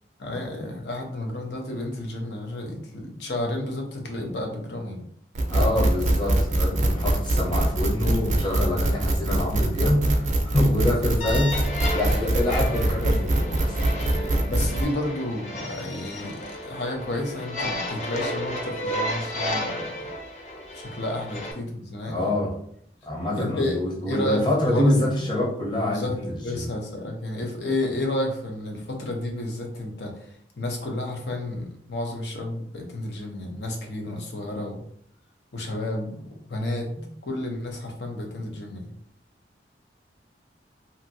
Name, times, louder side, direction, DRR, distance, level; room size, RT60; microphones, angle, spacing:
voice 1, 0.2-5.0 14.1-20.1 20.7-22.3 23.3-24.9 25.9-26.2 26.4-30.1 30.6-34.8 35.5-36.2 36.5-36.9 37.3-38.9, left 1 dB, 75° left, 2 dB, 0.7 m, -31 dB
sound 1, 5.3-14.8, right 1 dB, 45° right, 0.4 m, -23 dB
voice 2, 5.4-14.1 22.0-22.6 23.0-26.7 37.0-37.1, left 1 dB, 25° left, -4 dB, 0.8 m, -26 dB
sound 2, 11.2-21.5, left 1 dB, 40° left, 0.4 m, -33 dB
2.9 x 2.6 x 2.6 m, 0.67 s
head